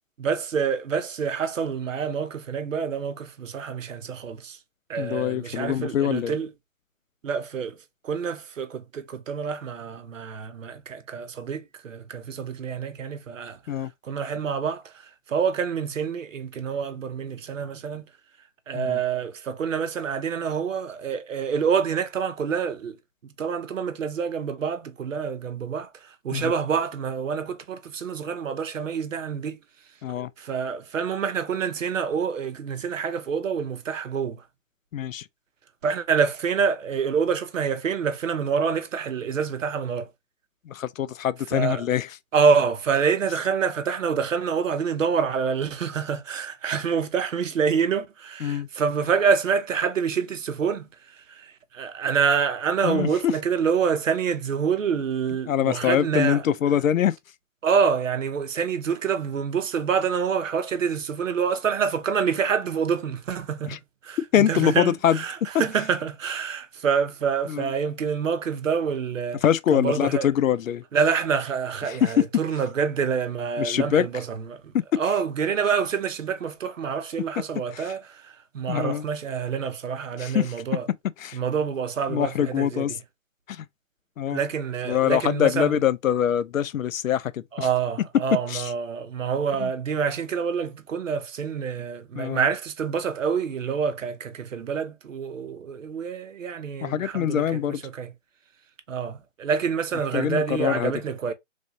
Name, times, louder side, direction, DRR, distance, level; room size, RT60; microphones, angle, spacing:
voice 1, 0.2-4.6 4.9-6.5 7.2-7.8 8.0-13.6 14.0-18.1 18.7-23.0 23.2-29.6 30.4-34.4 35.8-40.1 41.5-41.8 42.3-56.4 57.6-69.4 69.7-70.3 70.9-80.9 81.3-82.9 84.3-85.8 87.5-97.4 97.8-98.1 98.9-101.3, right 6 dB, 75° right, 0.8 m, -27 dB
voice 2, 5.0-6.4 13.7-13.9 18.7-19.0 26.3-26.5 30.0-30.3 34.9-35.3 40.6-42.2 48.4-48.7 52.8-53.3 55.5-57.2 63.7-63.8 64.3-65.2 67.5-67.7 69.4-70.8 71.9-72.3 73.6-74.1 74.9-75.0 77.7-77.9 78.7-79.1 80.2-80.5 81.2-81.4 82.1-83.0 83.5-83.7 84.2-84.4 84.9-87.7 88.5-88.7 89.6-89.7 92.1-92.5 96.8-97.8 100.1-100.9, left 10 dB, 85° left, 0.5 m, -24 dB
3.3 x 2.7 x 2.6 m
hypercardioid pair, 170°, 39 cm